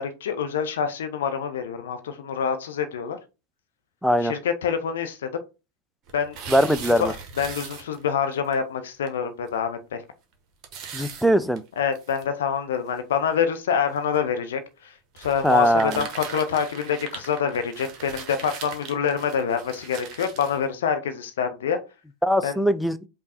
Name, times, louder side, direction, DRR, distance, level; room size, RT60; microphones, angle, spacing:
voice 1, 0.0-3.2 4.2-5.3 6.1-7.1 7.4-10.0 11.8-21.8 22.4-22.6, left 7 dB, 60° left, 0.5 m, -26 dB
voice 2, 4.0-4.3 6.5-7.1 10.9-11.6 15.4-15.9 22.2-23.0, equal, ahead, 0.3 m, -20 dB
sound 1, 6.1-8.2 8.5-8.6 9.1-9.2 9.5-9.6 10.6-12.2 12.9-13.0 13.9-14.2 15.2-20.6, right 6 dB, 35° right, 0.9 m, -39 dB
5.1 x 2.3 x 4.2 m
figure-of-eight pair, 90°, 0 cm